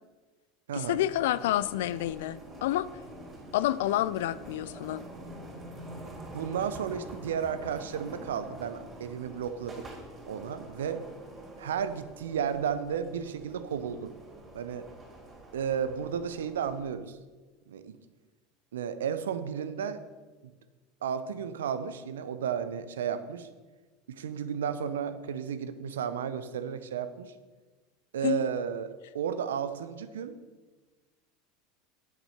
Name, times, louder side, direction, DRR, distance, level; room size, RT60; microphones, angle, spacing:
voice 1, 0.7-2.9 3.5-5.0 28.2-28.5, left 13 dB, 65° left, 17 dB, 0.4 m, -29 dB
sound 1, 0.8-16.9, right 1 dB, 20° right, 3.7 m, -46 dB
voice 2, 6.3-9.9 10.3-11.0 11.6-14.1 14.5-14.9 15.5-17.2 17.7-18.0 18.7-20.0 20.4-20.5 21.0-23.5 24.1-27.3 28.1-30.4, right 8 dB, 75° right, 12 dB, 0.7 m, -33 dB
9.5 x 7.2 x 5.7 m, 1.3 s
figure-of-eight pair, 80°, 0 cm